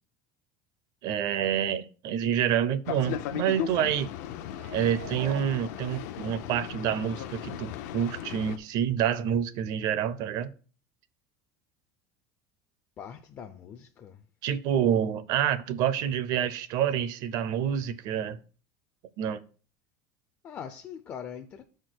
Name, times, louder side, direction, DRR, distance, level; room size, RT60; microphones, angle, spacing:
voice 1, 1.0-4.1 4.7-10.5 14.4-18.4 19.2-19.4, right 9 dB, 45° right, 0.6 m, -28 dB
Boat Water vehicle, 2.8-8.6, left 10 dB, 80° left, 0.7 m, -37 dB
sound 1, 4.5-6.5 7.0-7.1, right 5 dB, 80° right, 1.9 m, -46 dB
voice 2, 13.0-14.3 20.4-21.6, left 8 dB, 25° left, 0.4 m, -42 dB
6.5 x 4.4 x 6.3 m
cardioid pair, 175°, 9 cm